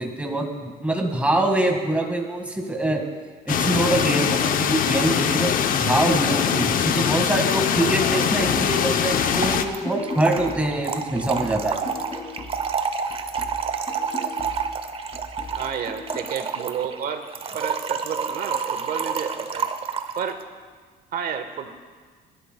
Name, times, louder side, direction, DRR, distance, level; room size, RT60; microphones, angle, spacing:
voice 1, 0.0-3.0 3.5-11.9, right 1 dB, 10° right, 2 dB, 1.8 m, -24 dB
sound 1, 3.5-9.6, left 8 dB, 55° left, 0.8 m, -22 dB
Trickle dribble / Fill (with liquid), 6.6-6.7 6.9-7.0 7.2-20.3, right 6 dB, 35° right, 0.8 m, -29 dB
sound 2, 8.4-12.8 13.1-16.4, left 2 dB, 30° left, 2.3 m, -39 dB
voice 2, 15.6-17.3 17.5-19.7 20.2-20.4 21.1-21.7, right 7 dB, 60° right, 7 dB, 1.3 m, -30 dB
23.0 x 11.5 x 2.3 m, 1.5 s
cardioid pair, 110°, 17 cm